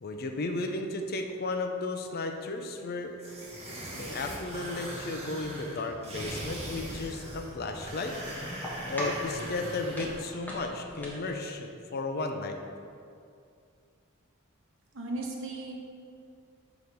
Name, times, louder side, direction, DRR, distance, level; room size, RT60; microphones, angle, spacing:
voice 1, 0.0-3.2 4.0-8.1 8.9-12.6, left 3 dB, 45° left, 5 dB, 0.5 m, -34 dB
sound 1, 3.2-10.2, right 1 dB, 30° right, 1.4 m, -40 dB
sound 2, 6.2-11.4, equal, 10° left, 1.2 m, -42 dB
voice 2, 14.9-16.0, right 2 dB, 65° right, 0 dB, 1.1 m, -37 dB
5.8 x 4.9 x 5.3 m, 2.4 s
head